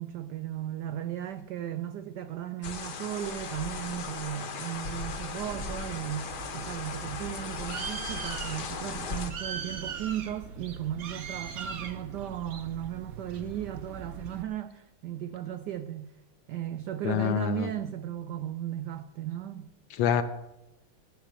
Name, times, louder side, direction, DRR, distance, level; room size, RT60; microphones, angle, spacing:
voice 1, 0.0-16.1 16.5-19.7, right 11 dB, 85° right, 0.9 m, -36 dB
sound 1, 2.6-9.3, left 5 dB, 55° left, 1.5 m, -37 dB
Bird, 5.5-14.4, right 5 dB, 55° right, 1.1 m, -40 dB
voice 2, 17.0-17.7 19.9-20.2, left 9 dB, 75° left, 1.3 m, -26 dB
14.5 x 7.2 x 6.6 m
omnidirectional pair, 2.4 m